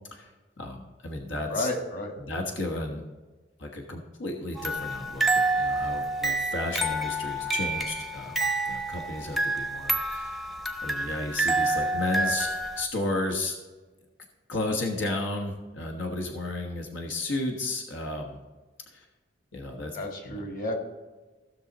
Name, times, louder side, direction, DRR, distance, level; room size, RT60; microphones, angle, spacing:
voice 1, 0.6-1.7 2.2-3.0 3.6-10.4 10.8-12.5 12.8-13.6 14.5-18.4 18.9-19.0 19.5-20.0 20.2-20.4, left 2 dB, 85° left, 2 dB, 1.3 m, -33 dB
voice 2, 1.5-2.1 12.1-12.4 19.9-20.7, left 1 dB, 45° left, 2 dB, 2.0 m, -32 dB
sound 1, 4.6-12.8, right 2 dB, ahead, 0.6 m, -28 dB
15.5 x 6.4 x 4.1 m, 1.3 s
head